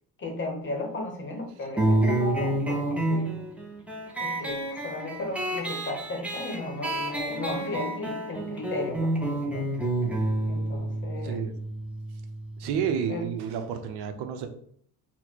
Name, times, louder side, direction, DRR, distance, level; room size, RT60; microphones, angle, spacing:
voice 1, 0.2-3.3 4.2-9.6 10.5-11.4 13.1-13.2, left 2 dB, 30° left, 2 dB, 0.8 m, -35 dB
sound 1, 1.8-12.9, right 1 dB, 5° right, 0.3 m, -29 dB
voice 2, 12.6-14.5, right 7 dB, 90° right, 7 dB, 0.7 m, -30 dB
4.3 x 2.1 x 4.4 m, 0.63 s
cardioid pair, 175°, 39 cm